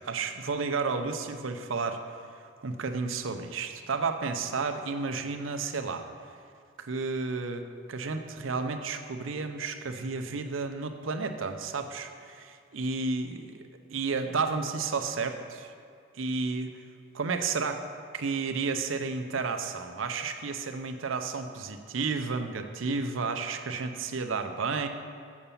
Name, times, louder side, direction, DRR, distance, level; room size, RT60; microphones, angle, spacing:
voice 1, 0.0-2.0 2.6-6.1 6.8-13.6 13.9-15.7 16.1-16.8 17.1-17.9 18.1-24.9, right 4 dB, 75° right, 7 dB, 0.6 m, -32 dB
7.2 x 6.8 x 7.0 m, 2.2 s
head